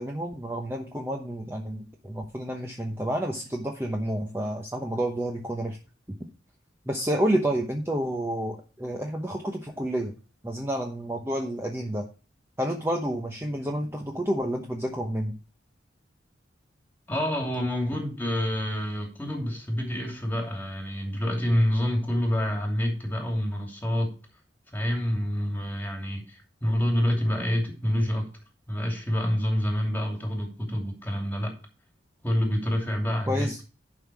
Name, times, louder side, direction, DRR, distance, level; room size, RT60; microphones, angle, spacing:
voice 1, 0.0-5.8 6.9-10.1 10.4-12.1 12.6-15.4 33.3-33.6, right 1 dB, 15° right, 1 dB, 0.9 m, -29 dB
voice 2, 17.1-24.1 24.7-28.3 28.7-31.5 32.2-33.6, equal, 10° left, 1 dB, 2.7 m, -27 dB
11.0 x 5.7 x 4.8 m, 0.34 s
head